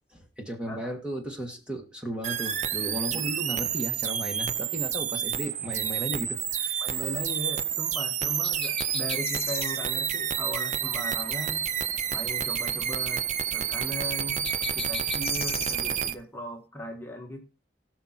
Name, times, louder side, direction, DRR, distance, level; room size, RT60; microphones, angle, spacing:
voice 1, 0.1-7.3, equal, 5° right, 2 dB, 1.6 m, -35 dB
sound 1, 2.2-16.1, right 9 dB, 40° right, 0.6 m, -29 dB
voice 2, 6.8-11.6 12.1-13.2 13.5-14.5 14.7-17.4, left 1 dB, 10° left, 2 dB, 1.5 m, -38 dB
sound 2, 8.4-9.8 14.4-15.8, left 10 dB, 30° left, 0.4 m, -37 dB
17.5 x 6.3 x 4.2 m, 0.32 s
head